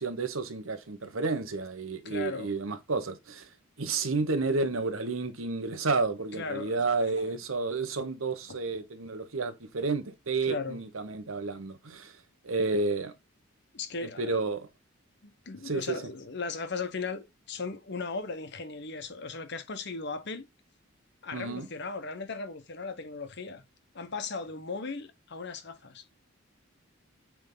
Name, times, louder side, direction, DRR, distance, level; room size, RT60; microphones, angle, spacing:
voice 1, 0.0-3.5 3.8-12.2 12.4-13.1 14.0-14.7 15.6-16.0 21.3-21.7, right 3 dB, 85° right, 1.1 m, -31 dB
voice 2, 2.0-2.5 6.3-7.3 8.5-8.6 10.5-10.8 13.7-14.4 15.2-20.5 21.2-23.6 23.9-26.0, left 4 dB, 55° left, 1.1 m, -37 dB
8.9 x 3.6 x 3.9 m
head